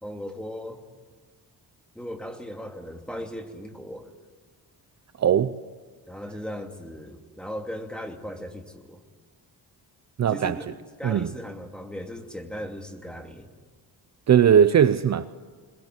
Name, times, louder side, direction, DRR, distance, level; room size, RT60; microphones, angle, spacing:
voice 1, 0.0-0.8 1.9-4.1 6.1-9.0 10.3-13.5, equal, ahead, 2.6 m, -37 dB
voice 2, 5.2-5.6 10.2-10.6 11.0-11.3 14.3-15.3, right 8 dB, 45° right, 0.7 m, -19 dB
22.5 x 21.0 x 9.6 m
cardioid pair, 125°, 37 cm